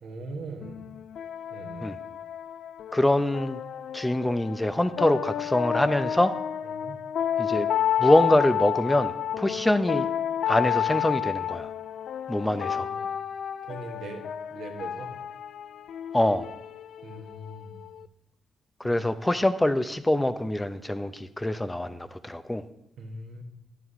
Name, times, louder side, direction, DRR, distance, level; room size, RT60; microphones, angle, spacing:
voice 1, 0.0-0.9 1.5-1.9 6.7-7.0 9.5-9.6 12.5-13.1 13.6-15.1 17.0-17.8 18.8-19.0 23.0-23.4, right 2 dB, 70° right, 2 dB, 1.4 m, -41 dB
sound 1, 0.6-18.1, left 10 dB, 65° left, 0.3 m, -31 dB
voice 2, 2.9-3.6 3.9-6.4 7.4-7.7 8.0-10.1 10.5-11.7 12.3-12.9 16.1-16.5 18.8-22.6, left 1 dB, 15° left, 10 dB, 0.7 m, -24 dB
10.5 x 9.2 x 3.7 m, 0.94 s
hypercardioid pair, 45°, 0 cm